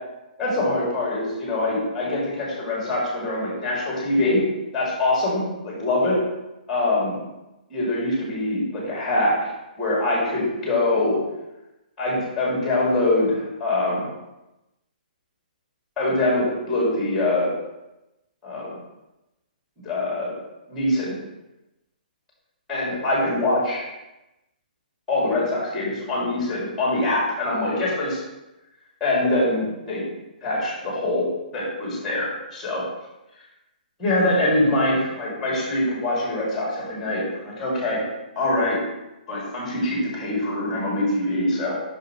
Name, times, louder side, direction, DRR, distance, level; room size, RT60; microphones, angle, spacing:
voice 1, 0.4-4.4 4.7-6.2 6.7-7.2 7.7-9.3 9.8-11.2 12.0-14.1 16.0-17.5 18.4-18.7 19.8-20.3 20.7-21.1 22.7-23.8 25.1-28.2 29.0-30.0 30.4-31.3 31.5-32.8 34.0-38.0 38.3-38.8 39.3-41.7, left 2 dB, 5° left, -5 dB, 2.6 m, -23 dB
7.5 x 5.8 x 3.2 m, 0.97 s
hypercardioid pair, 160°, 5 cm